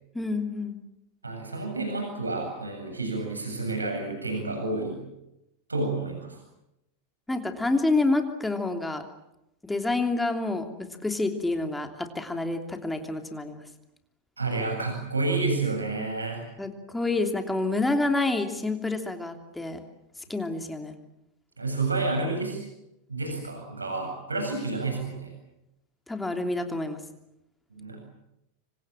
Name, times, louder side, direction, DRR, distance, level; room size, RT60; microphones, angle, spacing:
voice 1, 0.1-0.8 7.3-9.0 9.6-13.6 16.6-19.8 20.3-21.0 26.1-27.0, left 2 dB, 5° left, 5 dB, 3.0 m, -28 dB
voice 2, 1.2-5.0 5.7-6.4 14.4-16.4 21.6-22.6 23.1-25.3 27.7-28.0, right 3 dB, 80° right, 2 dB, 7.9 m, -30 dB
27.0 x 25.5 x 7.6 m, 0.87 s
figure-of-eight pair, 90°, 0 cm